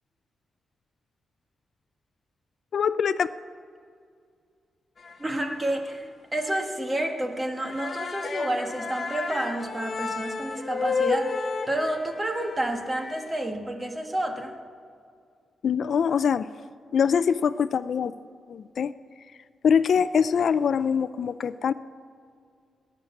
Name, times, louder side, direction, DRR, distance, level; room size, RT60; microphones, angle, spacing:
voice 1, 2.7-3.3 15.6-16.5 16.9-18.1 18.5-18.9 19.6-21.7, left 7 dB, 60° left, 15 dB, 0.4 m, -23 dB
sound 1, 5.0-5.6 5.9-6.0 6.4-6.6 6.9-7.1 7.4-13.4, left 4 dB, 35° left, 1.2 m, -32 dB
voice 2, 5.2-14.5, right 1 dB, 20° right, 4 dB, 1.5 m, -30 dB
19.0 x 9.6 x 7.2 m, 2.3 s
wide cardioid pair, 145°, 0 cm